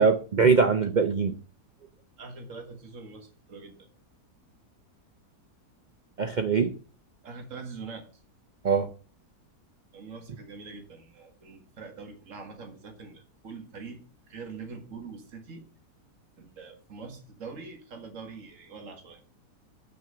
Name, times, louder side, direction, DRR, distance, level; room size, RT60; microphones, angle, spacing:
voice 1, 0.0-1.4 6.2-6.7 8.6-8.9, right 5 dB, 85° right, 8 dB, 0.4 m, -22 dB
voice 2, 2.2-3.8 7.2-8.0 9.9-14.0 14.3-15.6 16.4-19.2, right 4 dB, 55° right, 4 dB, 2.0 m, -43 dB
6.3 x 6.1 x 6.7 m, 0.38 s
omnidirectional pair, 1.7 m